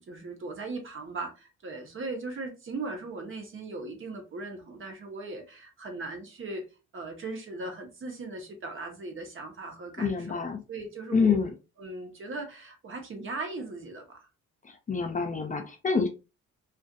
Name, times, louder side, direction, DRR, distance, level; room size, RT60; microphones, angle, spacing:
voice 1, 0.0-6.6 6.9-10.4 10.7-11.4 11.8-14.3, right 3 dB, 40° right, 1.0 m, -38 dB
voice 2, 10.0-10.6 11.1-11.5 14.6-16.1, left 5 dB, 25° left, 0.5 m, -27 dB
2.5 x 2.4 x 2.4 m
cardioid pair, 90°, 30 cm